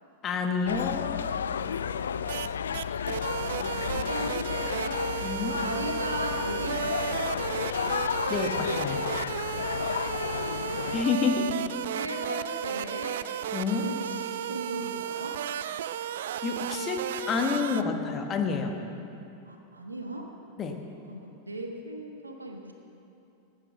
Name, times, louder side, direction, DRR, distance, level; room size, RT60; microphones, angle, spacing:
voice 1, 0.2-1.3 5.2-5.6 8.3-9.1 10.9-11.5 13.5-13.9 16.4-18.8 20.6-20.8, left 5 dB, 25° left, 4 dB, 1.4 m, -29 dB
sound 1, 0.7-11.0, left 7 dB, 65° left, 0.3 m, -32 dB
voice 2, 1.8-2.5 3.2-5.0 5.5-7.3 10.1-10.8 11.4-13.2 13.8-15.4 19.5-20.3 21.1-22.7, right 1 dB, 80° right, 3 dB, 1.5 m, -38 dB
sound 2, 2.3-2.5 2.7-17.8, right 10 dB, 60° right, 0.3 m, -34 dB
18.5 x 8.9 x 6.0 m, 2.8 s
figure-of-eight pair, 90°, 0 cm